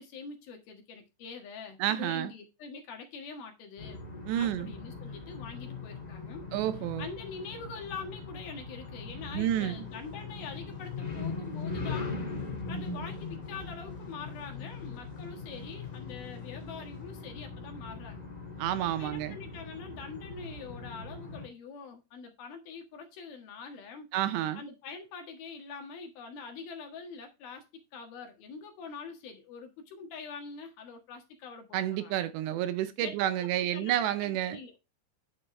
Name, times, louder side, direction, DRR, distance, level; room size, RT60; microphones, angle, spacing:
voice 1, 0.0-4.0 4.4-6.4 7.0-12.1 12.7-18.3 19.0-24.1 24.5-27.7 27.9-32.2 33.0-33.1 33.4-34.7, left 5 dB, 60° left, 3.1 m, -44 dB
voice 2, 1.8-2.3 4.3-4.7 6.5-7.1 9.3-9.8 18.6-19.4 24.1-24.6 31.7-34.6, right 12 dB, 80° right, 2.8 m, -30 dB
sound 1, 3.8-21.5, left 4 dB, 45° left, 0.5 m, -40 dB
sound 2, 9.4-17.2, left 3 dB, 30° left, 4.1 m, -56 dB
10.0 x 7.0 x 3.2 m
omnidirectional pair, 5.3 m